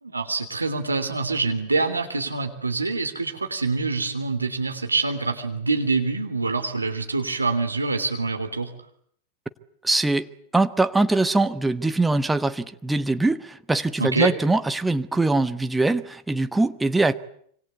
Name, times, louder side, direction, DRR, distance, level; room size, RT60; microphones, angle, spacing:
voice 1, 0.0-8.7 14.0-14.3, right 3 dB, 80° right, 6 dB, 3.2 m, -25 dB
voice 2, 9.8-17.1, right 2 dB, 5° right, 11 dB, 1.1 m, -22 dB
26.0 x 25.0 x 8.2 m, 0.65 s
figure-of-eight pair, 90°, 0 cm